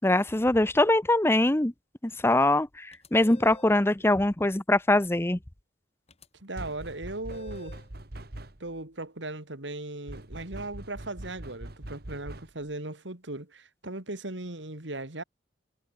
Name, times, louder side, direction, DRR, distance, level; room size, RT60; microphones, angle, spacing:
voice 1, 0.0-1.7 2.0-5.4, left 1 dB, 15° left, 0.7 m, -23 dB
sound 1, 2.9-3.8 6.1-6.3 7.3-7.9, left 2 dB, 35° left, 3.5 m, -49 dB
voice 2, 6.4-7.8 8.6-15.2, right 2 dB, 80° right, 3.1 m, -38 dB
sound 2, 6.5-8.8 10.1-12.7, right 1 dB, 55° right, 1.9 m, -42 dB
head